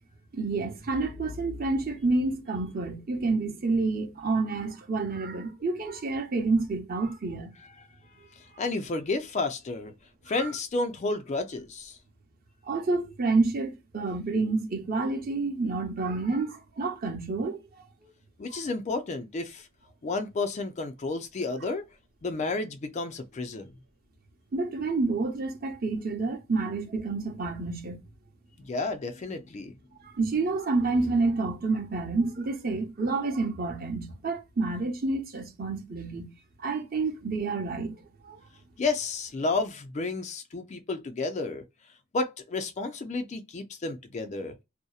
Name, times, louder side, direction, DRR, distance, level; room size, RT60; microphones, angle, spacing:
voice 1, 0.3-7.5 10.3-10.5 12.7-17.6 18.5-18.6 24.5-28.0 30.1-36.3 36.6-38.0 38.2-38.4, right 3 dB, 40° right, 0.7 m, -29 dB
voice 2, 8.3-9.9 10.3-12.0 18.4-19.7 20.0-21.8 22.2-23.7 28.6-29.7 38.8-41.6 42.1-44.5, left 3 dB, 30° left, 0.3 m, -31 dB
2.7 x 2.0 x 2.3 m
head